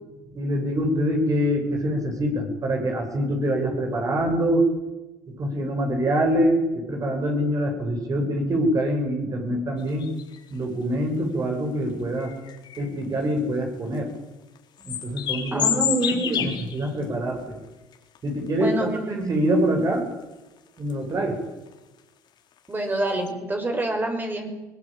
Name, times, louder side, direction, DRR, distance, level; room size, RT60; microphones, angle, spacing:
voice 1, 0.3-4.7 5.3-10.1 10.5-12.3 12.8-14.1 14.8-15.7 16.3-17.6 18.2-18.7 19.1-20.1 20.8-21.4, equal, 40° right, 3 dB, 7.6 m, -25 dB
sound 1, 9.8-10.6 11.5-11.6 12.2-13.6 13.9-14.1 14.6-17.0 17.4-17.5 17.9-18.7 19.2-19.8 20.1-20.2 20.8-21.1 21.7-21.8 22.0-22.1 22.5-22.7 23.1-23.3, left 9 dB, 55° left, 4.2 m, -29 dB
voice 2, 15.5-16.5 18.6-19.2 22.7-24.5, right 1 dB, 20° right, 4 dB, 6.4 m, -26 dB
23.0 x 18.5 x 9.1 m, 1.1 s
supercardioid pair, 80°, 9 cm